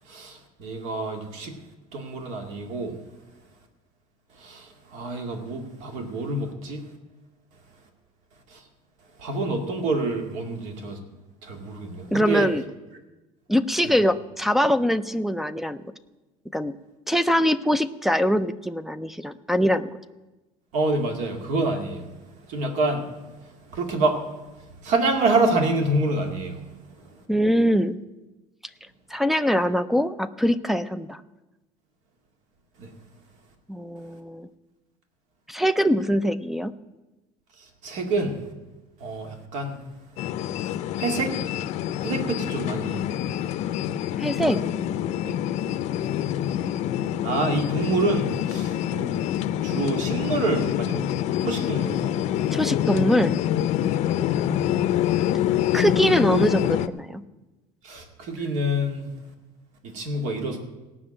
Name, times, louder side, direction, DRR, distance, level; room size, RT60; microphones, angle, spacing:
voice 1, 0.1-1.6 1.9-2.9 4.4-6.8 8.5-8.6 9.2-11.0 11.4-12.5 13.8-13.9 20.7-22.1 22.5-23.2 23.4-24.2 24.8-26.6 32.8-32.9 37.6-38.3 39.0-39.8 41.0-41.3 42.0-43.0 44.4-44.6 45.2-45.4 47.2-49.2 49.6-52.1 57.8-59.1 59.8-60.6, right 2 dB, 65° right, 4 dB, 2.2 m, -27 dB
voice 2, 12.1-12.6 13.5-15.8 16.5-16.8 17.1-19.9 27.3-28.0 29.1-31.2 33.7-34.5 35.5-36.7 44.2-44.6 52.5-53.3 55.7-57.2, equal, ahead, 14 dB, 0.4 m, -23 dB
sound 1, 40.2-56.9, left 11 dB, 60° left, 0.6 m, -26 dB
17.5 x 6.1 x 8.8 m, 1.1 s
cardioid pair, 150°, 13 cm